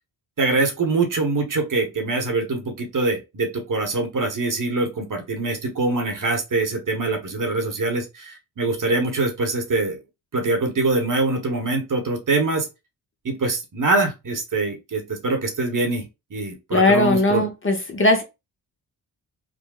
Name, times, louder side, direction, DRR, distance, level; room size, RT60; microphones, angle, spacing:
voice 1, 0.4-10.0 10.3-12.7 13.2-17.4, right 3 dB, 45° right, 3 dB, 1.0 m, -24 dB
voice 2, 16.7-18.2, left 2 dB, 30° left, 4 dB, 0.8 m, -18 dB
3.6 x 2.2 x 2.3 m, 0.24 s
cardioid pair, 65°, 43 cm